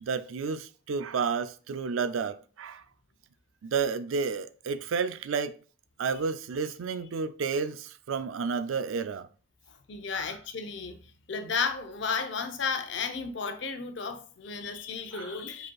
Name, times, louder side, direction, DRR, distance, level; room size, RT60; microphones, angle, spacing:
voice 1, 0.0-2.8 3.6-5.5 6.0-9.3 10.1-10.4 15.1-15.4, right 5 dB, 85° right, 0.4 m, -31 dB
voice 2, 9.9-11.0 11.3-15.7, left 5 dB, 65° left, 0.6 m, -33 dB
5.0 x 4.2 x 2.3 m
head